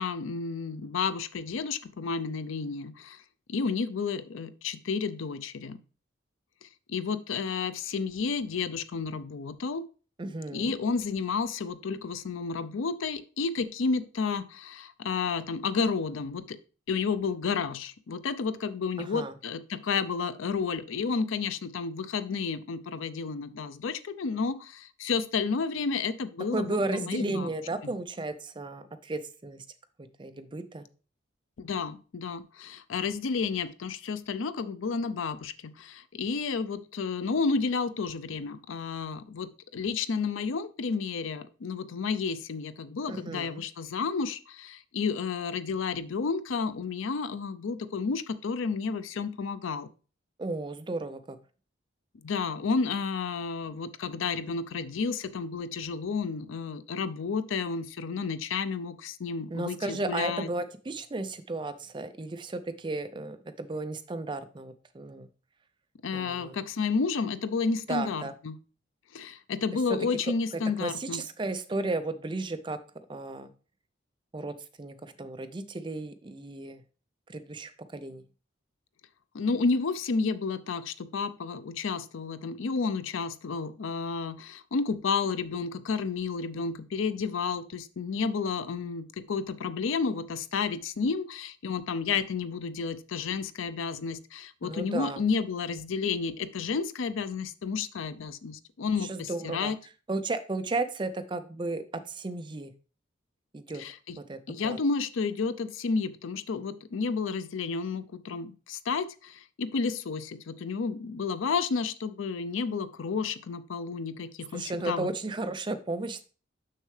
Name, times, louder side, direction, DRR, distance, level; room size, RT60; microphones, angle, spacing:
voice 1, 0.0-3.2 3.5-5.8 6.6-9.9 10.5-16.6 16.9-27.5 31.6-49.9 52.1-60.5 66.0-68.6 69.1-71.2 79.3-99.8 103.7-104.2 104.5-115.1, left 5 dB, 80° left, 13 dB, 0.5 m, -31 dB
voice 2, 10.2-10.7 19.0-19.3 26.5-29.6 30.2-30.8 43.1-43.6 50.4-51.4 59.5-65.3 66.1-66.6 67.9-68.3 69.9-70.0 70.8-72.8 73.1-73.5 74.3-76.8 77.3-78.2 94.6-95.2 99.0-99.7 100.1-102.7 103.5-103.8 104.3-104.8 114.5-116.2, right 2 dB, 25° right, 10 dB, 0.4 m, -34 dB
6.5 x 6.4 x 3.2 m, 0.37 s
head